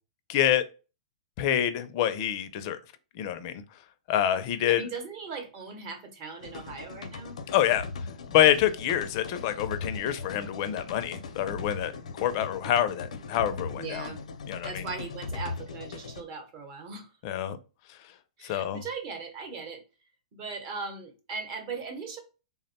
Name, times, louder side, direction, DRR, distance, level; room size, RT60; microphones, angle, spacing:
voice 1, 0.3-0.6 1.4-2.8 3.1-3.6 4.1-4.8 7.5-7.9 8.3-14.1 14.5-14.9 17.2-17.6 17.9-18.0 18.4-18.8, left 11 dB, 35° left, 0.4 m, -26 dB
voice 2, 4.7-7.4 13.8-14.2 14.6-17.1 18.4-19.8 20.3-22.2, right 4 dB, 35° right, 0.9 m, -39 dB
sound 1, 6.4-16.2, left 4 dB, 90° left, 0.5 m, -39 dB
3.4 x 2.2 x 4.1 m
hypercardioid pair, 155°, 4 cm